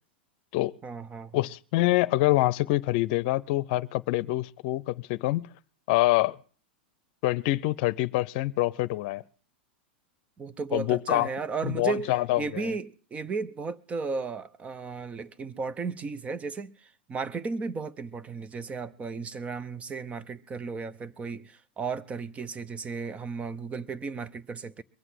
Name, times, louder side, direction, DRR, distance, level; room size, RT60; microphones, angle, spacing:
voice 1, 0.8-1.4 10.4-24.8, right 4 dB, 20° right, 0.8 m, -35 dB
voice 2, 1.3-5.5 5.9-6.4 7.2-9.2 10.7-11.3 11.6-12.7, left 17 dB, 55° left, 0.7 m, -25 dB
22.0 x 8.1 x 7.7 m
hypercardioid pair, 110°, 6 cm